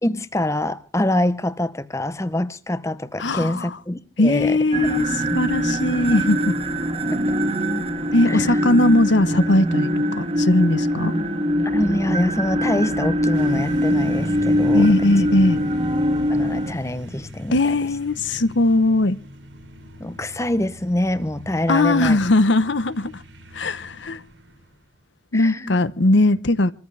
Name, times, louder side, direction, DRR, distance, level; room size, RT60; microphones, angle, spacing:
voice 1, 0.0-4.6 5.2-5.4 7.1-7.2 8.3-8.6 11.6-14.9 16.3-17.6 20.0-22.2 25.3-25.8, left 1 dB, 15° left, 0.8 m, -25 dB
voice 2, 3.2-3.7 4.2-6.5 8.1-11.1 14.7-15.6 17.5-19.2 21.7-23.2 23.5-24.2 25.3-26.7, left 2 dB, 75° left, 1.0 m, -19 dB
sound 1, 4.7-16.7, equal, 30° right, 1.9 m, -22 dB
sound 2, 13.3-25.1, left 1 dB, 90° right, 5.1 m, -41 dB
26.5 x 14.5 x 3.4 m
head